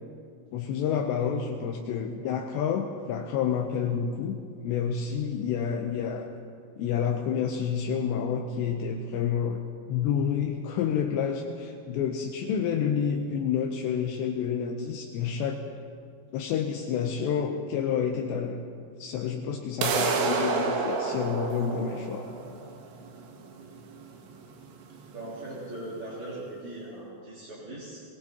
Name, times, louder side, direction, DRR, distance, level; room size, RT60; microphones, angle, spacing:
voice 1, 0.5-4.4 4.6-6.3 6.8-9.6 9.9-15.6 16.3-18.6 19.0-22.2, left 7 dB, 80° left, 1 dB, 2.6 m, -29 dB
sound 1, 19.8-25.8, right 4 dB, 75° right, 3.2 m, -30 dB
voice 2, 25.1-28.0, right 1 dB, 35° right, -9 dB, 2.4 m, -39 dB
22.5 x 19.5 x 2.9 m, 2.3 s
omnidirectional pair, 5.7 m